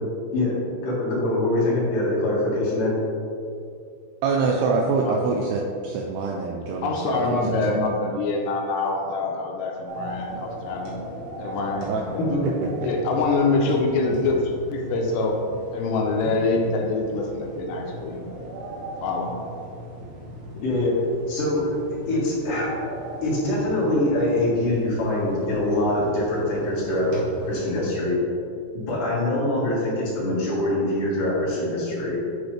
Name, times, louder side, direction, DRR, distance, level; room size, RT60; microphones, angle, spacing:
voice 1, 0.8-2.9 12.3-12.4 20.6-21.0 21.3-21.8 22.1-22.7 23.2-27.1 27.5-28.2 28.9-32.2, left 1 dB, 55° left, -7 dB, 2.9 m, -24 dB
voice 2, 4.2-7.4 7.7-7.8 11.9-12.5 12.8-12.9, right 4 dB, 85° right, 0 dB, 2.3 m, -25 dB
voice 3, 6.8-11.0 11.4-12.3 12.8-15.4 15.7-18.2 19.0-19.3, left 3 dB, 85° left, 1 dB, 2.7 m, -25 dB
sound 1, 9.9-27.9, right 1 dB, 60° right, 2.2 m, -38 dB
10.0 x 4.9 x 3.3 m, 2.5 s
omnidirectional pair, 5.2 m